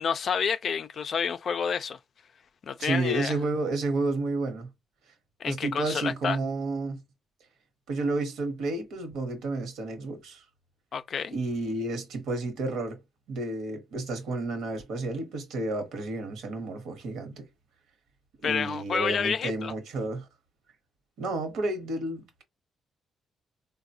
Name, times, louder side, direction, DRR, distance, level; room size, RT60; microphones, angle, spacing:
voice 1, 0.0-2.0 2.6-3.3 5.4-6.4 10.9-11.4 18.4-19.7, left 6 dB, 55° left, 0.3 m, -29 dB
voice 2, 2.8-4.7 5.5-7.0 7.9-10.4 11.3-13.0 13.3-17.5 18.4-20.3 21.2-22.4, right 2 dB, 80° right, 1.0 m, -31 dB
3.9 x 2.1 x 2.6 m
cardioid pair, 90°, 0 cm